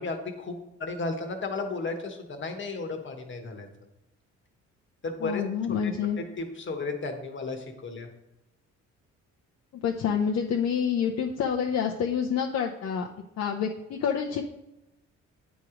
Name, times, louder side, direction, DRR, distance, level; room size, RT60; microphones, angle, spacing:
voice 1, 0.0-3.7 5.0-5.4 5.8-8.1, left 3 dB, 40° left, 5 dB, 1.2 m, -34 dB
voice 2, 5.2-6.2 9.8-13.1 13.4-14.5, left 7 dB, 60° left, 0 dB, 0.7 m, -28 dB
9.0 x 3.0 x 5.0 m, 0.93 s
cardioid pair, 90°, 30 cm